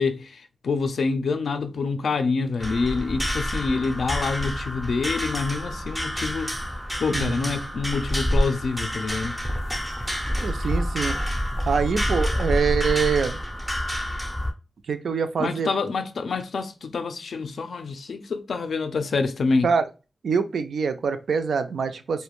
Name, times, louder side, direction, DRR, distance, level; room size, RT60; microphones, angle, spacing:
voice 1, 0.0-6.6 7.0-9.4 15.4-19.7, left 4 dB, 70° left, 0.4 m, -26 dB
sound 1, 2.6-14.5, equal, ahead, 0.4 m, -28 dB
voice 2, 7.1-7.5 10.4-11.2 11.7-13.4 14.9-15.7 19.6-19.8 20.2-22.2, right 6 dB, 80° right, 0.3 m, -25 dB
2.4 x 2.1 x 2.9 m
wide cardioid pair, 175°, 0 cm